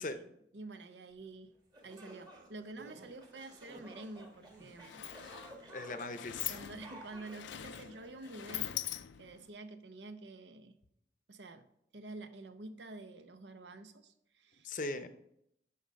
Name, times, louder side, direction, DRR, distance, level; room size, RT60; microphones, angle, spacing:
voice 1, 0.0-1.5 1.8-5.1 6.4-8.8 9.2-10.8 11.3-11.7 11.9-14.8, right 2 dB, 80° right, 9 dB, 0.8 m, -49 dB
sound 1, 1.3-1.4 1.7-8.8, right 1 dB, 25° right, 1.5 m, -54 dB
sound 2, 2.8-4.1 4.4-4.9, right 4 dB, 45° right, 0.8 m, -54 dB
Sliding door, 4.2-4.3 4.6-9.5, left 13 dB, 90° left, 0.4 m, -43 dB
voice 2, 5.7-6.6 14.6-15.1, left 2 dB, 45° left, 10 dB, 0.6 m, -39 dB
11.5 x 4.0 x 5.2 m, 0.76 s
head